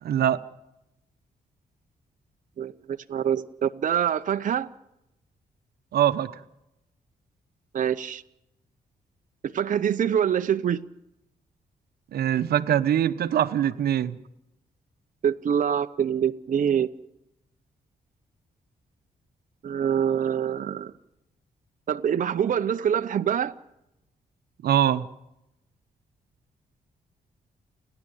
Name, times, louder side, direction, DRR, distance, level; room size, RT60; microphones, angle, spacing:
voice 1, 0.0-0.4 5.9-6.3 12.1-14.2 24.6-25.1, right 10 dB, 85° right, 11 dB, 0.9 m, -23 dB
voice 2, 2.6-4.7 7.7-8.2 9.4-10.8 15.2-16.9 19.6-20.9 21.9-23.5, right 8 dB, 55° right, 8 dB, 0.8 m, -25 dB
30.0 x 11.0 x 9.1 m, 0.86 s
cardioid pair, 95°, 16 cm